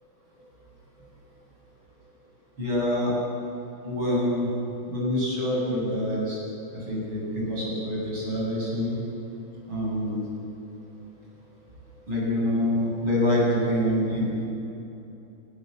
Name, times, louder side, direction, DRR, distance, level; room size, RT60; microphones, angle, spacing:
voice 1, 2.6-3.1 3.8-4.5 4.9-6.4 6.9-9.0 9.7-10.2 12.1-14.5, left 1 dB, 25° right, -4 dB, 8.3 m, -26 dB
26.0 x 20.5 x 7.6 m, 2.8 s
omnidirectional pair, 5.2 m